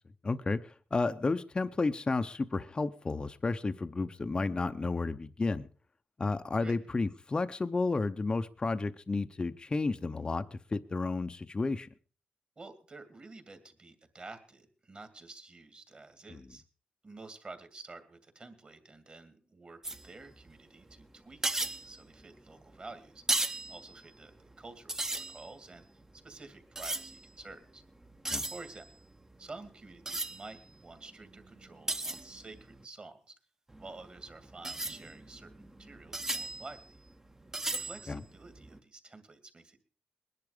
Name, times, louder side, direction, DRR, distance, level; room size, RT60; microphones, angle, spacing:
voice 1, 0.2-5.7 6.2-11.9 16.3-16.4 28.3-28.4 38.1-38.2, left 3 dB, 30° left, 9 dB, 0.7 m, -32 dB
voice 2, 12.6-16.6 17.0-23.2 23.7-25.8 26.2-27.8 28.4-28.9 29.4-33.3 33.8-37.0 37.7-39.8, right 3 dB, 35° right, 9 dB, 2.4 m, -50 dB
sound 1, 19.8-20.6 20.9-21.0 21.3-22.8 23.2-24.6 24.9-27.5 27.9-32.8 33.7-38.8, right 2 dB, 15° right, 0.9 m, -37 dB
20.5 x 11.0 x 5.0 m, 0.40 s
cardioid pair, 100°, 3 cm